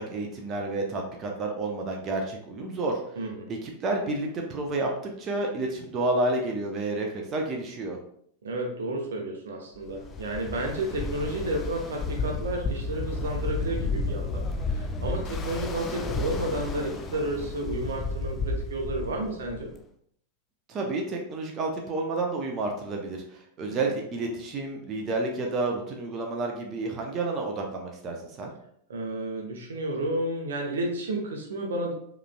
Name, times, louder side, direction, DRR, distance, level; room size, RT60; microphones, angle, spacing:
voice 1, 0.0-3.0 3.5-8.0 20.7-28.5, right 2 dB, 30° right, 1 dB, 0.6 m, -30 dB
voice 2, 3.2-3.5 8.4-19.7 23.7-24.0 28.9-31.9, right 1 dB, 65° right, 2 dB, 0.7 m, -31 dB
Ocean, 9.9-19.8, left 3 dB, 25° left, 0.5 m, -32 dB
4.8 x 3.1 x 2.2 m, 0.67 s
figure-of-eight pair, 90°, 0 cm